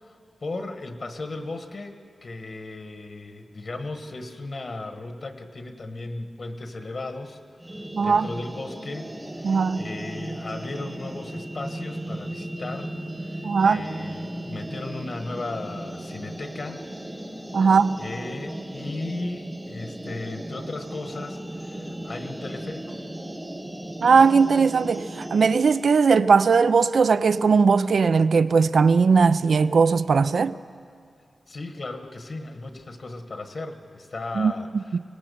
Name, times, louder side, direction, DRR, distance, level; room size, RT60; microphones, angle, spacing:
voice 1, 0.0-12.9 13.2-16.8 18.0-23.0 31.5-35.0, left 2 dB, 50° left, 1.3 m, -36 dB
sound 1, 7.6-25.9, right 1 dB, 10° right, 1.0 m, -36 dB
voice 2, 7.9-8.3 9.4-9.9 13.4-13.8 17.5-18.0 24.0-30.5 34.4-35.0, right 5 dB, 70° right, 0.4 m, -19 dB
24.0 x 19.0 x 6.9 m
wide cardioid pair, 155°, 0 cm